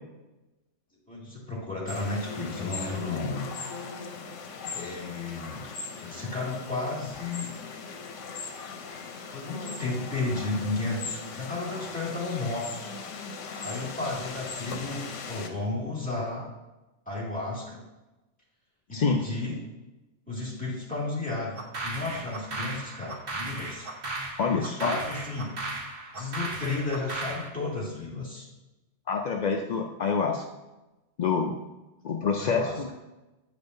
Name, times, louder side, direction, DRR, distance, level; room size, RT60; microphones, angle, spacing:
voice 1, 1.1-3.4 4.7-5.7 6.0-7.5 9.3-12.9 13.6-16.5 17.1-17.8 18.9-19.6 20.3-23.9 24.5-25.5 26.1-28.5 32.4-32.9, left 2 dB, 5° left, -7 dB, 2.1 m, -33 dB
sound 1, 1.9-15.5, left 5 dB, 80° left, 1.0 m, -39 dB
sound 2, 21.6-27.5, right 2 dB, 50° right, 1.2 m, -36 dB
voice 2, 24.4-24.9 29.1-30.4 31.2-31.5 32.0-32.9, left 5 dB, 60° left, 2 dB, 0.4 m, -26 dB
9.0 x 5.1 x 2.6 m, 1.0 s
omnidirectional pair, 1.2 m